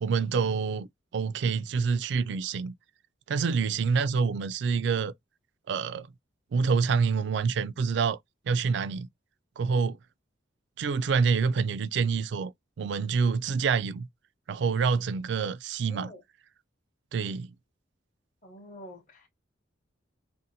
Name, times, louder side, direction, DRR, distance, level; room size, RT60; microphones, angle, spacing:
voice 1, 0.0-0.9 1.1-2.7 3.3-5.1 5.7-6.1 6.5-8.2 8.5-9.1 9.6-10.0 10.8-12.5 12.8-14.1 14.5-16.1 17.1-17.5, right 5 dB, 60° right, 0.3 m, -27 dB
voice 2, 15.9-16.2 18.4-19.3, equal, 40° left, 0.8 m, -46 dB
2.7 x 2.1 x 3.9 m
head